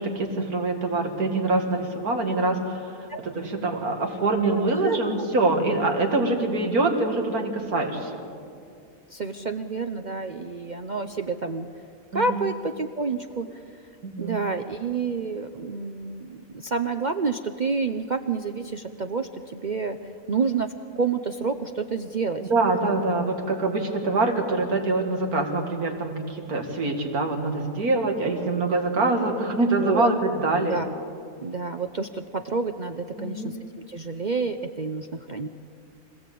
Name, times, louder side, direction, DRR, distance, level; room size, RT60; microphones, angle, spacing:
voice 1, 0.0-8.2 12.1-12.4 14.0-14.4 22.5-30.8 33.2-33.5, right 2 dB, 85° right, 3 dB, 2.6 m, -25 dB
voice 2, 9.1-11.7 12.1-13.8 14.2-22.5 29.8-30.1 30.7-30.9 31.4-35.5, right 4 dB, 45° right, 7 dB, 0.6 m, -29 dB
25.0 x 16.5 x 8.4 m, 2.4 s
omnidirectional pair, 1.5 m